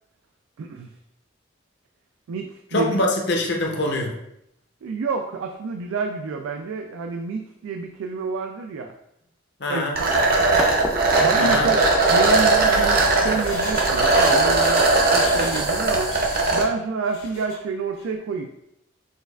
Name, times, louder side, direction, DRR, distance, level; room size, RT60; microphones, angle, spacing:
voice 1, 0.6-0.9 2.3-3.0 4.8-8.9 9.7-10.3 11.2-11.8 12.1-16.1 16.5-18.5, right 4 dB, 85° right, 4 dB, 0.3 m, -28 dB
voice 2, 2.7-4.1 9.6-10.0 11.3-11.7, left 1 dB, 55° left, 1 dB, 0.7 m, -24 dB
sound 1, 10.0-16.6, right 2 dB, 45° right, 0.7 m, -19 dB
sound 2, 10.6-16.4, equal, 5° right, 0.3 m, -35 dB
Engine, 13.0-15.7 16.0-16.6 17.0-17.6 17.9-18.0, left 2 dB, 70° left, 1.1 m, -36 dB
6.3 x 2.3 x 2.3 m, 0.79 s
head